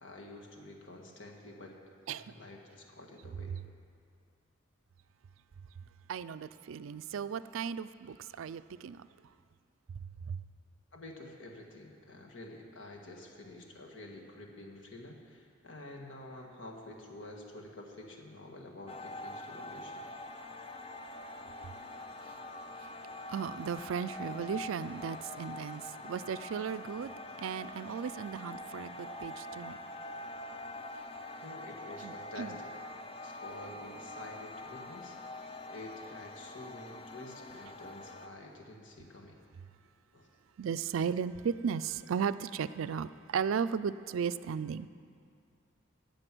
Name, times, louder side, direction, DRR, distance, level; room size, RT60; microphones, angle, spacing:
voice 1, 0.0-1.8 2.1-3.6 10.9-20.1 31.4-32.7 33.2-35.2 35.7-39.4 40.1-40.3, left 2 dB, 70° left, 1.6 m, -49 dB
voice 2, 6.1-9.0 10.3-10.4 23.3-27.1 27.4-29.8 32.0-32.1 32.4-32.5 40.6-44.9, right 7 dB, 80° right, 0.4 m, -35 dB
sound 1, 18.9-38.3, left 2 dB, 30° left, 0.5 m, -45 dB
16.5 x 7.5 x 6.1 m
head